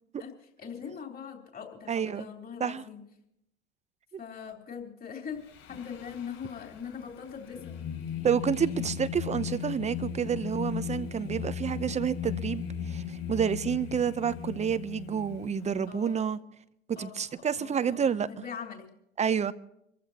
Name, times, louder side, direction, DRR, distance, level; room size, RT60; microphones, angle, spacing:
voice 1, 0.6-3.0 4.2-5.4 5.7-7.8 15.9-16.2 17.0-18.9, left 7 dB, 25° left, 3.8 m, -41 dB
voice 2, 1.9-2.3 2.6-2.8 4.1-4.2 8.2-16.4 16.9-18.3 19.2-19.5, right 7 dB, 20° right, 0.8 m, -29 dB
Singing, 5.4-15.8, left 8 dB, 45° left, 6.3 m, -37 dB
26.5 x 15.0 x 2.9 m
hypercardioid pair, 100°, 34 cm